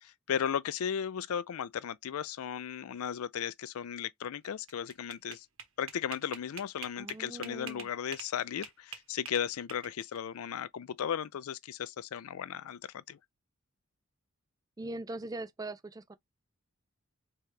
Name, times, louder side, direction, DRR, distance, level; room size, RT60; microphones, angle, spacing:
voice 1, 0.0-5.5 5.8-13.2, left 8 dB, 85° left, 0.4 m, -36 dB
sound 1, 4.4-8.3 8.6-10.2, right 7 dB, 70° right, 1.3 m, -45 dB
voice 2, 7.0-7.9 14.8-16.2, right 2 dB, 15° right, 0.4 m, -41 dB
4.8 x 2.9 x 3.3 m
head